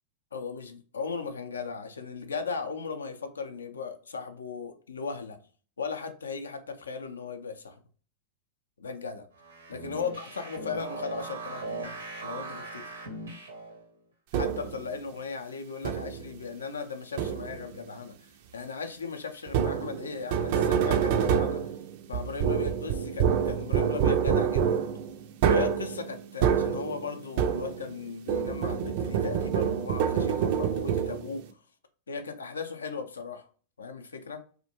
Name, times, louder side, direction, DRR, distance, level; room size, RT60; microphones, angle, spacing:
voice 1, 0.3-5.4 5.8-7.8 8.8-9.3 9.7-13.0 14.3-18.2 18.5-21.6 22.1-24.8 25.5-31.4 32.1-33.5 33.8-34.4, left 5 dB, 90° left, 0.4 m, -37 dB
sound 1, 9.4-13.8, right 3 dB, 85° right, 0.7 m, -39 dB
sound 2, 14.3-14.8 15.8-16.3 17.2-17.7 19.5-28.0 28.3-31.4, right 8 dB, 60° right, 0.3 m, -27 dB
2.5 x 2.1 x 2.8 m
hypercardioid pair, 100°, 0 cm